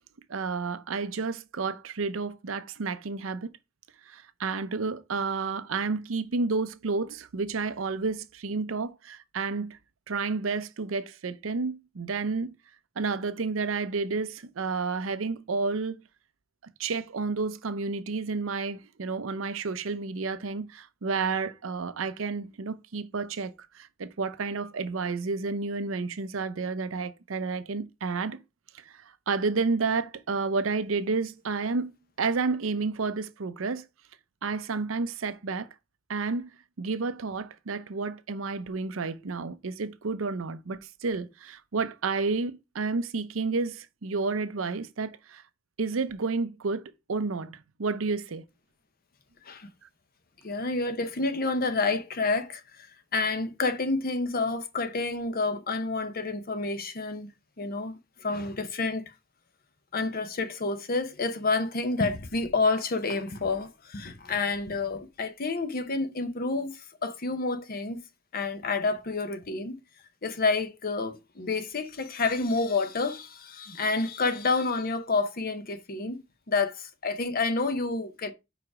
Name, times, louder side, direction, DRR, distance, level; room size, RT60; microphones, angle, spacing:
voice 1, 0.3-3.5 4.1-9.8 10.1-12.5 13.0-16.0 16.8-28.4 28.7-28.9 29.3-33.8 34.4-35.7 36.1-36.5 36.8-45.4 45.8-48.5, right 4 dB, 85° right, 0.6 m, -31 dB
voice 2, 50.4-52.9 53.1-57.3 57.6-59.1 59.9-68.0 68.3-69.8 70.2-78.3, left 3 dB, 50° left, 0.8 m, -29 dB
5.0 x 4.8 x 4.8 m
head